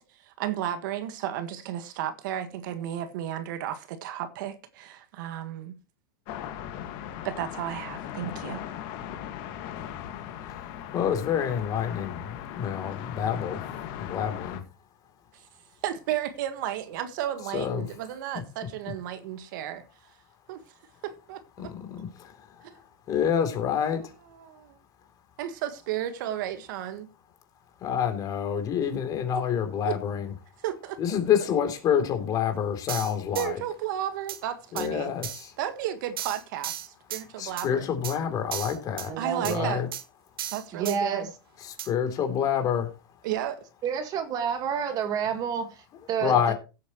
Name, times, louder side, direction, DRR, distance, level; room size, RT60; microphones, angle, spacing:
voice 1, 0.1-5.7 7.2-8.6 15.3-15.4 15.8-19.9 20.5-20.6 21.0-22.0 22.6-22.8 24.4-24.8 25.4-27.1 29.3-29.4 29.9-30.0 30.6-31.2 33.4-35.1 35.6-37.9 39.2-39.8 40.5-41.3 43.2-43.6, right 11 dB, 60° right, 1.6 m, -33 dB
sound 1, 6.3-14.6, left 10 dB, 45° left, 1.9 m, -38 dB
voice 2, 10.9-13.6 14.0-14.6 17.5-17.9 21.6-24.1 27.8-30.3 31.0-33.6 34.7-35.6 37.4-39.9 41.6-42.9 46.2-46.5, left 8 dB, 30° left, 3.3 m, -28 dB
sound 2, 32.9-33.5 34.3-34.4 34.8-34.9 35.2-35.5 36.2-37.2 37.6-37.7 38.0-38.2 38.5-39.1 39.4-39.6 39.9-40.0 40.4-41.0 41.8-41.9, right 10 dB, 85° right, 1.7 m, -35 dB
voice 3, 39.0-39.7 40.7-41.3 43.8-46.5, right 7 dB, 30° right, 1.8 m, -29 dB
16.5 x 8.5 x 3.1 m
supercardioid pair, 140°, 12 cm